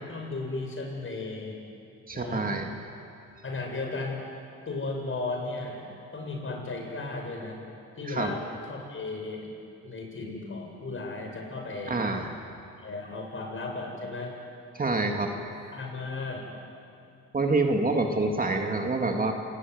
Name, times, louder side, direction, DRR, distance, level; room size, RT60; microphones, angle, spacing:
voice 1, 0.1-1.6 2.1-2.5 3.4-4.2 4.7-5.8 6.1-7.6 8.0-8.4 8.7-9.5 9.8-12.0 12.8-14.3 15.3-15.4 15.7-16.5, left 3 dB, 45° left, 1 dB, 7.6 m, -35 dB
voice 2, 2.1-2.7 8.1-8.3 11.9-12.3 14.7-15.3 17.3-19.3, right 3 dB, 30° right, 3 dB, 2.4 m, -26 dB
27.5 x 19.5 x 9.6 m, 2.6 s
cardioid pair, 90°, 30 cm